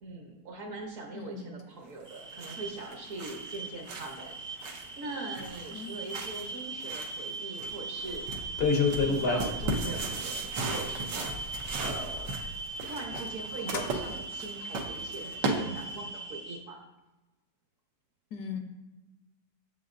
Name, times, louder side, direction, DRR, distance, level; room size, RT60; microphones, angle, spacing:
voice 1, 0.0-12.4 12.8-16.8, right 2 dB, 55° right, 1 dB, 1.2 m, -42 dB
voice 2, 1.1-1.5 5.7-6.2 18.3-18.6, left 6 dB, 65° left, 4 dB, 1.3 m, -40 dB
sound 1, 2.0-16.2, right 3 dB, 80° right, 1.5 m, -38 dB
sound 2, 2.1-16.6, right 3 dB, 35° right, 0.7 m, -40 dB
sound 3, 8.1-8.2 8.4-10.1 10.8-10.9 11.1-12.5 12.8-13.2 13.6-13.9, left 4 dB, 50° left, 0.8 m, -29 dB
7.2 x 7.1 x 2.6 m, 1.1 s
omnidirectional pair, 1.9 m